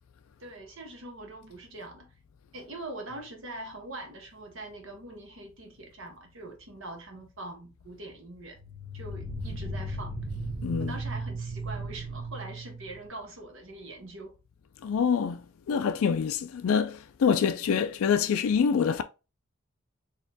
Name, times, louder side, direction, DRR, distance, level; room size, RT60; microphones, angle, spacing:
voice 1, 0.4-2.1 2.5-8.6 8.9-10.2 10.8-14.3, right 2 dB, 60° right, 1.1 m, -43 dB
sound 1, 3.1-3.2 8.6-13.1, right 2 dB, 35° right, 0.7 m, -36 dB
voice 2, 10.6-11.0 14.8-15.4 15.7-19.0, left 6 dB, 70° left, 0.3 m, -25 dB
4.2 x 2.9 x 2.7 m
head